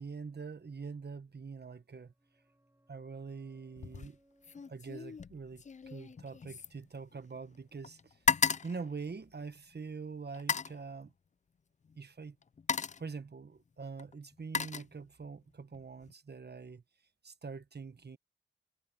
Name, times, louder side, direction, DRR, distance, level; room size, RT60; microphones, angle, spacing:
voice 1, 0.0-2.1 2.9-4.2 4.7-8.2 8.6-11.1 12.0-12.4 13.0-16.8 17.2-18.2, right 5 dB, 50° right, 1.3 m, -44 dB
sound 1, 1.7-7.1 7.3-7.4, right 1 dB, 10° right, 6.7 m, -72 dB
sound 2, 3.8-4.1 4.4-7.6 7.8-9.7 10.3-10.8 11.8-12.0 12.4-13.1 14.0-15.4 15.7-16.1, left 6 dB, 35° left, 0.4 m, -35 dB
cardioid pair, 60°, 21 cm